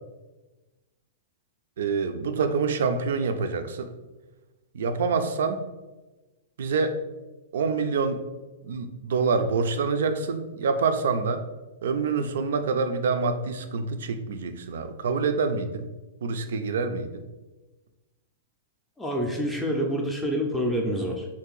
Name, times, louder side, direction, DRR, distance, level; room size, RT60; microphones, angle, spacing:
voice 1, 1.8-3.9 4.7-5.6 6.6-7.0 7.5-8.2 8.6-11.4 11.8-15.9 16.2-17.2, right 4 dB, 75° right, 8 dB, 0.3 m, -26 dB
voice 2, 19.0-21.3, equal, 5° left, 0 dB, 0.4 m, -27 dB
2.7 x 2.5 x 3.8 m, 1.1 s
hypercardioid pair, 145°, 0 cm